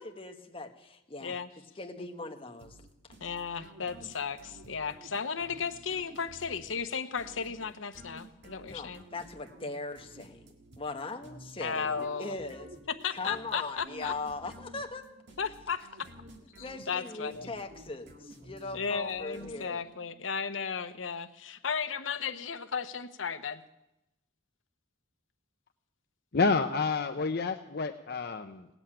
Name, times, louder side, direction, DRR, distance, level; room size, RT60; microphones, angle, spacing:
voice 1, 0.0-1.3 1.8-2.8 8.7-10.4 10.8-12.7 13.1-15.1 16.6-19.8, left 3 dB, 30° left, 4 dB, 1.3 m, -40 dB
sound 1, 2.6-20.1, right 1 dB, 65° right, 1.9 m, -52 dB
voice 2, 3.2-9.0 11.6-12.3 12.9-14.1 15.4-16.1 16.6-17.5 18.7-23.6, left 6 dB, 85° left, 9 dB, 1.0 m, -35 dB
voice 3, 26.3-28.7, left 4 dB, 55° left, 6 dB, 0.7 m, -29 dB
18.5 x 8.1 x 9.0 m, 0.91 s
head